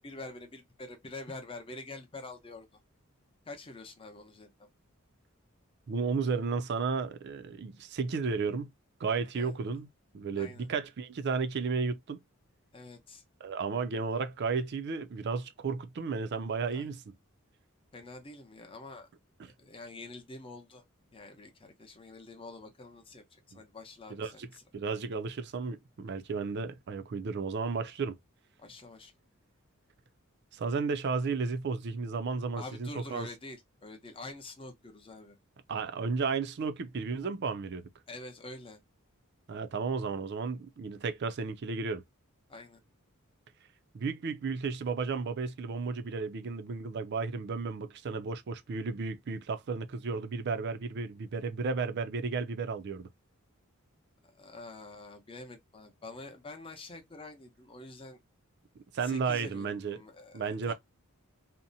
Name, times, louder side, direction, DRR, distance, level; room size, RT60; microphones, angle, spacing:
voice 1, 0.0-2.7 3.5-4.5 9.3-9.5 10.4-10.7 12.7-13.2 16.7-16.9 17.9-19.1 19.5-20.8 21.1-24.6 28.6-29.1 32.6-35.4 38.1-38.8 42.5-42.8 54.2-58.2 59.0-60.7, left 2 dB, 25° left, 0.7 m, -46 dB
voice 2, 5.9-8.7 9.0-9.9 10.1-12.2 13.4-17.1 24.1-24.5 24.7-28.2 30.5-33.3 35.7-37.9 39.5-42.0 43.9-53.1 58.9-60.0 60.3-60.7, right 4 dB, 55° right, 0.4 m, -33 dB
2.7 x 2.0 x 2.6 m
head